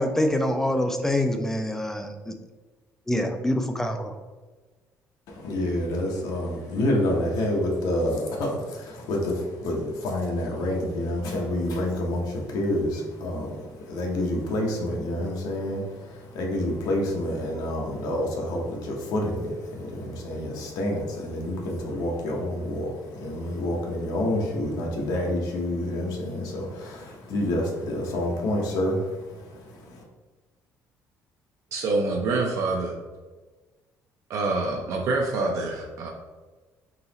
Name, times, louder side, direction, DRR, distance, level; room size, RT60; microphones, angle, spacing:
voice 1, 0.0-2.3 3.1-4.1, left 1 dB, 5° left, 6 dB, 0.3 m, -25 dB
voice 2, 5.3-30.0, left 1 dB, 80° left, 0 dB, 0.9 m, -28 dB
voice 3, 31.7-33.0 34.3-36.1, right 3 dB, 50° right, 0 dB, 0.5 m, -26 dB
3.9 x 2.9 x 4.0 m, 1.3 s
cardioid pair, 180°, 6 cm